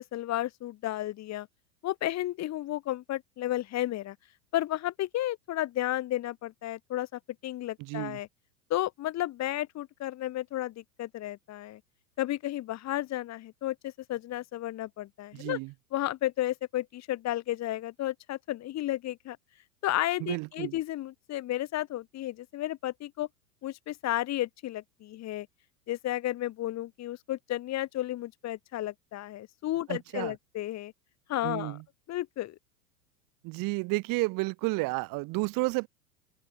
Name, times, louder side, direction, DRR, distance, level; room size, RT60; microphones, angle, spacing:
voice 1, 0.0-1.5 1.8-4.2 4.5-8.3 8.7-11.8 12.2-15.6 15.9-19.4 19.8-23.3 23.6-25.5 25.9-30.9 31.3-31.8 32.1-32.6, left 14 dB, 35° left, 4.2 m, -33 dB
voice 2, 7.8-8.2 15.3-15.7 20.2-20.7 29.9-30.3 31.4-31.8 33.4-35.9, right 25 dB, 45° right, 4.3 m, -31 dB
open air
figure-of-eight pair, 90°, 46 cm